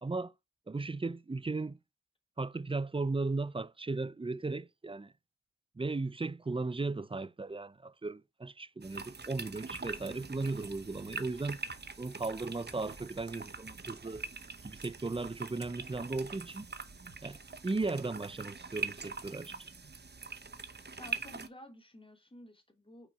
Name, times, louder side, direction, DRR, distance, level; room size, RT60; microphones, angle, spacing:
voice 1, 0.0-0.3 0.7-1.8 2.4-5.1 5.8-11.6 12.0-14.3 14.6-16.7 17.2-19.5, right 3 dB, 15° right, 0.4 m, -36 dB
sound 1, 8.8-21.5, right 4 dB, 35° right, 0.8 m, -43 dB
sound 2, 9.7-17.5, right 2 dB, 70° right, 2.3 m, -58 dB
voice 2, 21.0-23.1, left 1 dB, 15° left, 2.4 m, -52 dB
6.1 x 5.0 x 4.6 m
cardioid pair, 50°, 31 cm